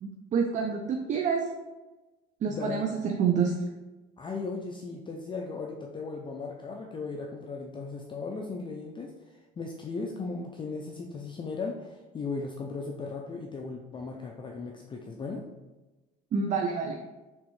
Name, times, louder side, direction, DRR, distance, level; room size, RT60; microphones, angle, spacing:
voice 1, 0.0-1.4 2.4-3.5 16.3-17.0, right 6 dB, 40° right, 3 dB, 0.4 m, -27 dB
voice 2, 2.5-2.8 4.2-15.5, left 4 dB, 25° left, 1 dB, 0.4 m, -37 dB
3.6 x 3.0 x 3.1 m, 1.1 s
supercardioid pair, 85°, 19 cm